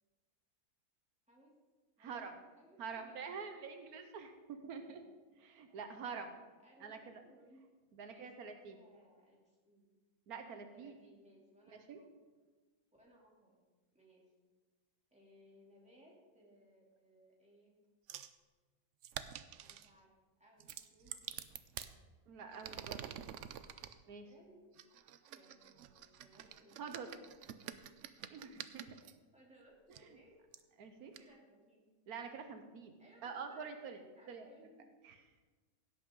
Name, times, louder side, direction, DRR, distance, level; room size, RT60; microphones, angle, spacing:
voice 1, 2.0-2.3 2.8-5.0 5.4-6.4 6.8-7.2 7.9-8.8 10.3-10.9 11.7-12.0 22.3-23.0 24.1-24.3 26.8-27.1 28.3-29.0 30.8-31.1 32.1-32.9 33.2-34.0 34.3-34.4 35.0-35.2, right 5 dB, 85° right, 6 dB, 1.4 m, -46 dB
voice 2, 2.6-3.2 4.7-5.1 5.7-5.8 6.6-7.6 8.0-9.9 10.7-12.1 12.9-13.6 13.9-14.3 15.1-17.7 19.5-20.1 20.4-21.3 22.8-23.3 24.0-24.6 25.3-26.9 28.3-28.7 29.3-30.4 31.2-31.9 33.0-33.6 34.0-34.9, equal, 5° right, -4 dB, 2.7 m, -65 dB
sound 1, 18.1-18.3 19.0-19.9 20.6-21.9 22.5-23.9 24.8-29.1 29.9-30.0 30.5-30.6 31.1-31.2, right 10 dB, 65° right, 0.8 m, -48 dB
16.5 x 8.4 x 3.8 m, 1.3 s
omnidirectional pair, 1.6 m